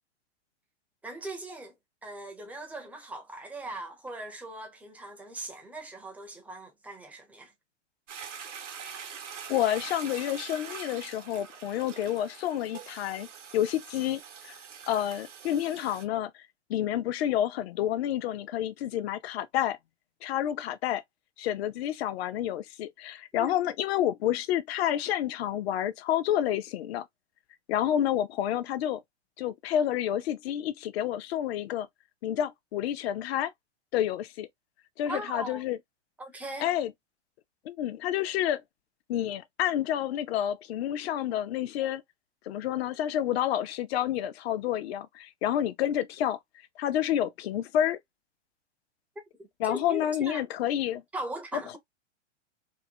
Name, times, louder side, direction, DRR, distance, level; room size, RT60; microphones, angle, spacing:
voice 1, 1.0-1.7 2.0-7.5 23.3-23.5 35.1-35.6 36.2-36.7 49.4-50.4 51.1-51.8, right 1 dB, 5° right, 0.4 m, -39 dB
Toilet flush, 8.1-16.0, right 7 dB, 90° right, 0.8 m, -44 dB
voice 2, 9.5-13.3 13.5-14.5 14.9-16.3 16.7-19.8 20.2-21.0 21.4-27.1 27.7-29.0 29.4-31.9 32.2-33.5 33.9-34.5 35.0-35.8 36.6-36.9 37.6-38.6 39.1-42.0 42.5-46.4 46.8-48.0 49.6-51.0 51.5-51.8, left 11 dB, 60° left, 0.6 m, -29 dB
2.8 x 2.0 x 2.6 m
hypercardioid pair, 120°, 36 cm